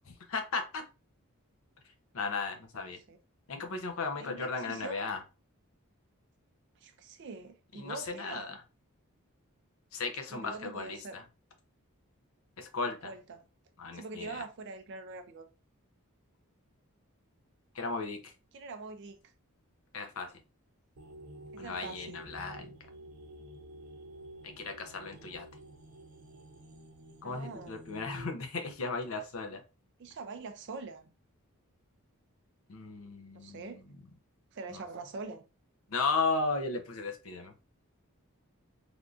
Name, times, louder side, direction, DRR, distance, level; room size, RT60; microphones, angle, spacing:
voice 1, 0.1-0.8 2.1-3.0 3.5-5.2 7.7-8.6 9.9-11.2 12.6-13.1 13.8-14.4 17.7-18.3 19.9-20.3 21.6-22.7 24.4-25.5 27.2-29.6 32.7-33.9 34.7-34.8 35.9-37.5, left 4 dB, 70° left, 0.6 m, -35 dB
voice 2, 4.2-5.0 6.8-8.6 10.3-11.2 13.0-13.4 13.9-15.5 18.5-19.2 21.5-22.2 27.2-27.9 30.0-31.1 33.3-33.8 34.5-35.4, right 3 dB, 55° right, 0.4 m, -44 dB
sound 1, 21.0-28.3, right 1 dB, 85° right, 0.7 m, -50 dB
3.4 x 2.5 x 2.3 m
head